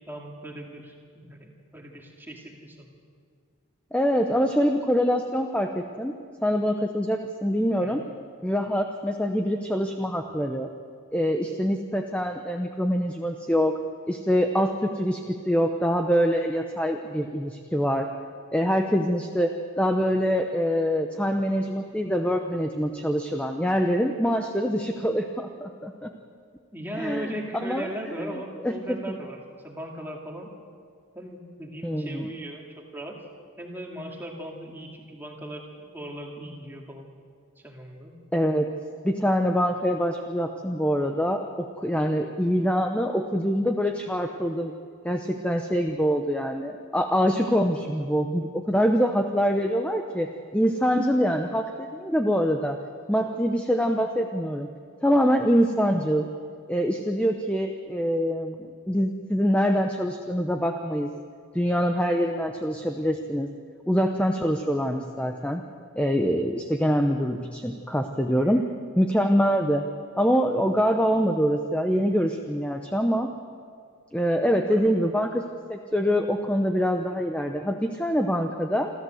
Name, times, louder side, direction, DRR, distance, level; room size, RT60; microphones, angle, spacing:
voice 1, 0.1-2.9 7.8-7.9 26.7-29.4 29.6-30.5 31.1-33.2 33.6-37.1 37.6-38.2 68.3-68.6 74.5-75.0, right 1 dB, 10° right, 0 dB, 2.3 m, -38 dB
voice 2, 3.9-6.1 6.4-8.0 8.4-10.7 11.1-13.8 14.1-18.1 18.5-19.5 19.8-26.1 27.0-27.9 28.2-29.0 31.8-32.3 38.3-38.7 39.0-44.7 45.0-50.3 50.5-52.8 53.1-54.7 55.0-56.3 56.7-61.1 61.5-63.5 63.9-65.6 66.0-68.6 69.0-69.8 70.2-73.3 74.1-75.4 75.7-78.9, equal, 5° left, 4 dB, 0.8 m, -24 dB
27.5 x 13.5 x 7.9 m, 2.1 s
head